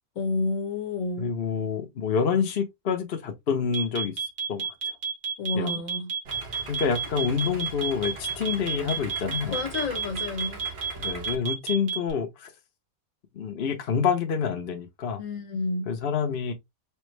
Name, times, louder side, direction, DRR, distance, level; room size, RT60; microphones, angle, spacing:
voice 1, 0.2-1.3 5.4-6.1 9.5-10.7 15.2-15.9, left 3 dB, 75° left, 1.5 m, -30 dB
voice 2, 1.2-4.1 4.5-4.7 5.5-5.7 6.7-9.6 11.0-12.5 13.3-15.2 15.9-16.5, left 6 dB, 50° left, 0.9 m, -27 dB
sound 1, 3.7-12.1, right 6 dB, 80° right, 1.9 m, -30 dB
Idling, 6.2-11.3, right 3 dB, 55° right, 1.2 m, -41 dB
4.4 x 2.4 x 3.1 m
omnidirectional pair, 1.4 m